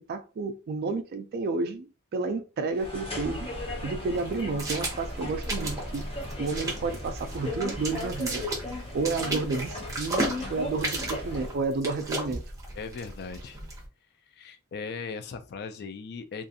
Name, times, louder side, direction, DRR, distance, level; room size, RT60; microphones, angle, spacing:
voice 1, 0.0-3.5 3.8-6.1 6.4-8.5 8.9-12.4, right 3 dB, 45° right, 0.3 m, -31 dB
sound 1, 2.7-11.6, left 1 dB, 25° left, 0.7 m, -37 dB
sound 2, 2.8-13.9, right 1 dB, 15° right, 0.8 m, -35 dB
voice 2, 12.7-13.6 14.3-16.5, left 5 dB, 50° left, 0.3 m, -38 dB
2.4 x 2.3 x 2.6 m
head